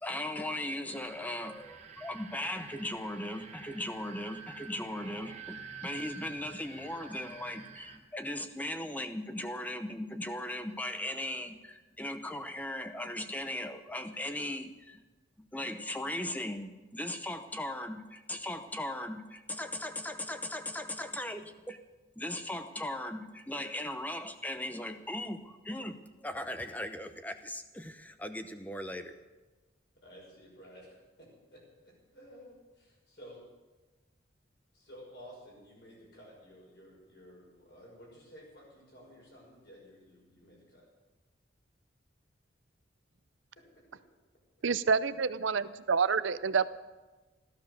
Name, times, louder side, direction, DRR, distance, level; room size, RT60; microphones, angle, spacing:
voice 1, 0.0-15.0 15.4-21.8 22.2-29.2, left 1 dB, 10° left, 9 dB, 0.7 m, -38 dB
sound 1, 0.9-8.0, right 5 dB, 35° right, 1.3 m, -49 dB
voice 2, 30.0-33.4 34.7-40.9, equal, 55° left, -2 dB, 5.9 m, -53 dB
voice 3, 44.6-46.7, right 5 dB, 75° right, 15 dB, 0.6 m, -28 dB
14.5 x 13.0 x 6.7 m, 1.2 s
head